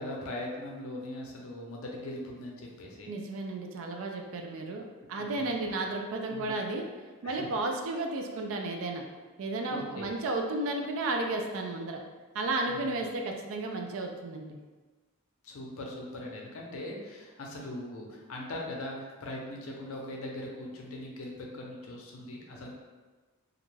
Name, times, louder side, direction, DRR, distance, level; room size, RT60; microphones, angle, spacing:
voice 1, 0.0-3.2 5.0-5.7 6.3-6.5 7.2-7.5 9.7-10.1 12.7-12.9 15.4-22.8, left 1 dB, 65° left, -1 dB, 0.5 m, -40 dB
voice 2, 3.1-6.8 7.2-9.0 9.4-12.0 12.3-14.6, right 2 dB, 65° right, 2 dB, 0.4 m, -33 dB
2.4 x 2.2 x 3.1 m, 1.3 s
head